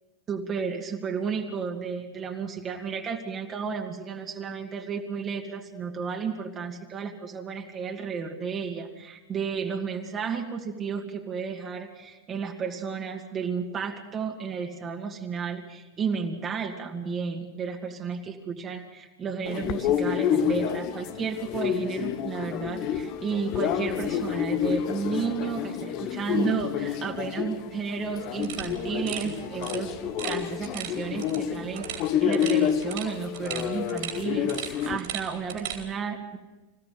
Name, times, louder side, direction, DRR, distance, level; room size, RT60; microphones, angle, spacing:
voice 1, 0.3-36.4, right 6 dB, 25° right, 2 dB, 2.5 m, -32 dB
sound 1, 19.5-35.0, left 9 dB, 40° left, 1.2 m, -29 dB
sound 2, 28.4-35.8, right 10 dB, 50° right, 4.3 m, -39 dB
27.0 x 16.5 x 6.6 m, 1.1 s
figure-of-eight pair, 90°, 0 cm